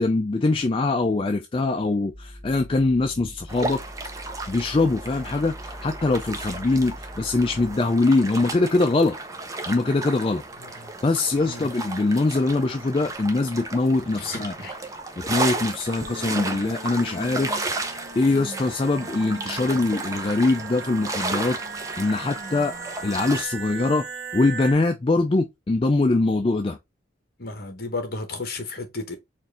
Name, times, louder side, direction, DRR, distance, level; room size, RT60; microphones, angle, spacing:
voice 1, 0.0-3.8 4.5-9.2 9.7-10.4 11.0-14.5 15.2-21.6 22.0-22.7 23.0-24.0 24.3-26.8, left 2 dB, 30° left, 0.4 m, -23 dB
sound 1, 2.1-7.7, equal, 5° left, 1.1 m, -42 dB
sound 2, 3.5-23.4, right 3 dB, 15° right, 0.6 m, -34 dB
voice 2, 10.6-10.9 11.4-11.7 14.2-14.7 27.4-29.2, left 3 dB, 50° left, 1.2 m, -34 dB
sound 3, 15.9-24.7, right 4 dB, 60° right, 0.8 m, -38 dB
4.4 x 2.6 x 3.5 m
head